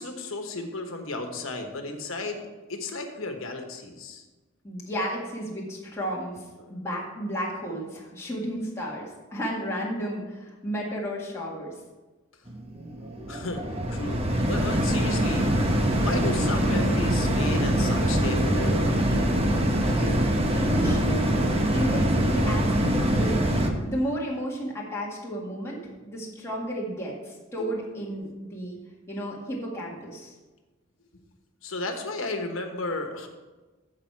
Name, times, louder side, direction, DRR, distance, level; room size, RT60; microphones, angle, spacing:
voice 1, 0.0-4.2 6.6-6.7 13.3-13.6 13.9-14.2 14.5-19.0 27.6-27.7 31.6-33.3, left 2 dB, 80° left, 5 dB, 1.2 m, -34 dB
voice 2, 4.6-6.4 6.7-11.7 19.8-20.2 20.5-21.4 21.7-23.4 23.8-28.8 29.1-30.3, equal, 15° left, -5 dB, 1.8 m, -33 dB
sound 1, 12.5-23.7, right 1 dB, 30° right, 1.1 m, -24 dB
15.0 x 4.9 x 4.6 m, 1.2 s
head